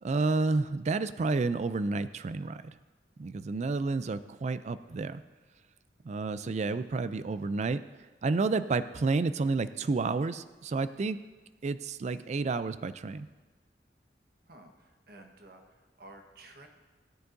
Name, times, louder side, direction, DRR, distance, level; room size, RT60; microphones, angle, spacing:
voice 1, 0.0-2.7 3.2-5.2 6.0-7.8 8.2-11.2 11.6-13.3, right 3 dB, 40° right, 13 dB, 0.4 m, -30 dB
voice 2, 14.4-16.7, right 2 dB, 60° right, 3 dB, 1.3 m, -53 dB
17.0 x 9.5 x 2.7 m, 1.3 s
head